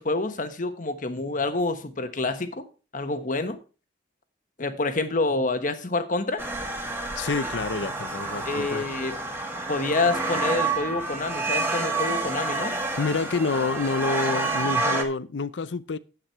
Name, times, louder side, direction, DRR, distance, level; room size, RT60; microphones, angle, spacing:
voice 1, 0.0-2.6 2.9-3.6 4.6-6.4 8.5-9.1 9.7-12.8, left 3 dB, 45° left, 1.2 m, -27 dB
sound 1, 6.4-15.0, right 3 dB, 15° right, 1.8 m, -29 dB
voice 2, 7.2-8.8 13.0-16.0, left 4 dB, 80° left, 0.6 m, -28 dB
9.3 x 8.6 x 4.6 m
head